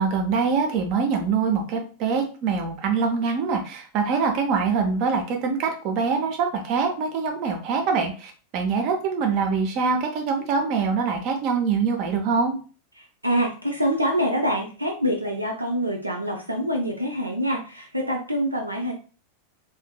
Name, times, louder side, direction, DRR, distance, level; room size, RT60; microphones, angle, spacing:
voice 1, 0.0-12.6, right 5 dB, 40° right, 3 dB, 0.7 m, -24 dB
voice 2, 13.0-18.9, equal, 85° right, 2 dB, 0.5 m, -25 dB
3.5 x 2.8 x 2.2 m, 0.37 s
figure-of-eight pair, 90°, 0 cm